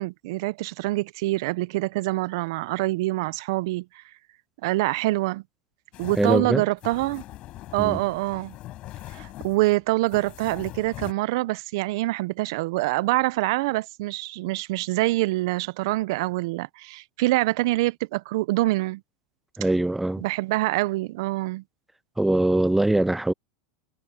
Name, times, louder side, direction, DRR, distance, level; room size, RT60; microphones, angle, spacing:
voice 1, 0.0-4.0 4.6-5.4 6.0-7.2 7.7-8.5 9.1-19.0 20.2-21.6, right 20 dB, 65° right, 0.6 m, -25 dB
sound 1, 5.9-11.1, left 15 dB, 45° left, 7.2 m, -41 dB
voice 2, 6.2-6.6 7.8-8.0 19.6-20.2 22.2-23.3, right 1 dB, 5° right, 0.4 m, -22 dB
hypercardioid pair, 110°, 2 cm